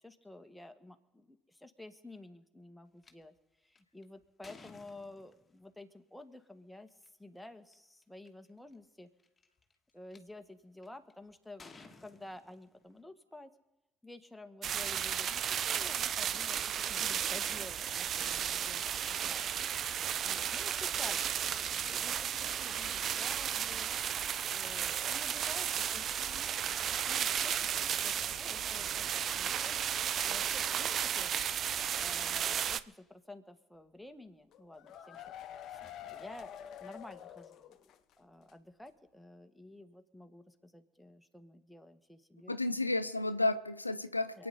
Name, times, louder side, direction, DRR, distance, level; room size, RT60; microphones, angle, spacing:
voice 1, 0.0-9.1 9.9-11.6 12.0-13.5 14.0-19.5 20.2-23.9 24.5-26.8 27.1-29.8 30.2-31.3 31.9-35.2 35.7-37.8 38.2-42.6 44.4-44.5, left 2 dB, 5° left, 6 dB, 1.8 m, -52 dB
sound 1, 3.0-3.1 3.8-5.6 6.9-7.1 7.7-7.8 8.0-8.5 9.2-10.2 10.8-11.1 11.6-13.0, left 3 dB, 25° left, 1.8 m, -56 dB
sound 2, 14.6-32.8, right 9 dB, 50° right, 0.6 m, -34 dB
sound 3, 34.5-38.1 38.4-38.5 38.9-39.0, left 10 dB, 55° left, 0.9 m, -48 dB
voice 2, 42.5-44.5, left 2 dB, 90° left, 13 dB, 0.4 m, -32 dB
27.5 x 9.4 x 4.2 m, 1.0 s
figure-of-eight pair, 50°, 0 cm